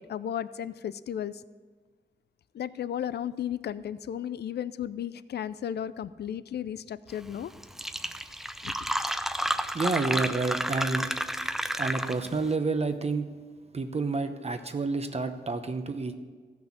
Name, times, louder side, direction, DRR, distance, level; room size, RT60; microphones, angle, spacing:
voice 1, 0.0-1.4 2.5-7.5 8.6-8.7, left 9 dB, 65° left, 16 dB, 0.4 m, -34 dB
Fill (with liquid), 7.3-7.4 7.6-12.4, equal, ahead, 0.5 m, -31 dB
voice 2, 9.7-11.1 11.8-13.3 13.7-16.1, right 3 dB, 35° right, 7 dB, 0.8 m, -29 dB
14.5 x 6.1 x 7.2 m, 1.5 s
wide cardioid pair, 95°, 18 cm